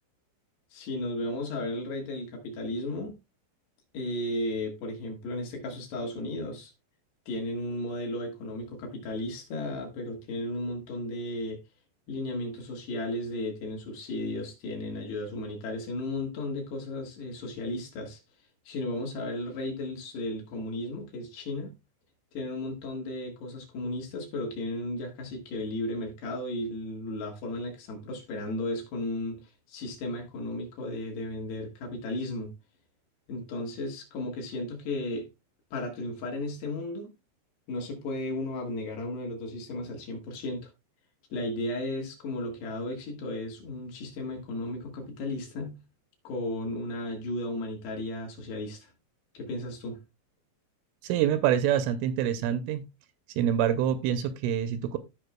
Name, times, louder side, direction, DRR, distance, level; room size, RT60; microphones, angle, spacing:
voice 1, 0.7-3.1 3.9-6.7 7.3-11.6 12.1-18.2 18.7-21.7 22.3-29.4 29.7-32.5 33.3-35.3 35.7-37.1 37.7-40.7 41.3-45.8 46.2-48.9 49.3-50.0, left 1 dB, 65° left, 3.4 m, -34 dB
voice 2, 51.0-52.8 53.4-55.0, right 10 dB, 85° right, 3.0 m, -26 dB
15.5 x 5.2 x 2.2 m
omnidirectional pair, 5.8 m